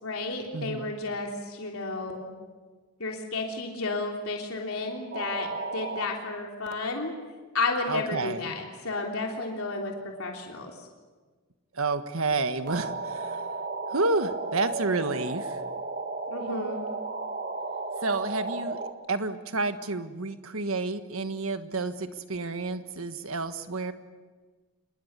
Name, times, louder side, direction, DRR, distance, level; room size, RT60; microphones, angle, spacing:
voice 1, 0.0-2.3 3.0-7.1 7.5-10.9 16.3-16.8, left 3 dB, 80° left, 1 dB, 3.4 m, -32 dB
voice 2, 0.5-0.9 7.9-8.6 11.7-13.5 13.9-15.6 18.0-18.8 19.1-23.9, right 3 dB, 75° right, 9 dB, 1.5 m, -30 dB
sound 1, 5.1-6.0 6.7-6.8 12.7-18.9, right 3 dB, 40° right, 1.5 m, -34 dB
26.5 x 21.5 x 8.2 m, 1.4 s
head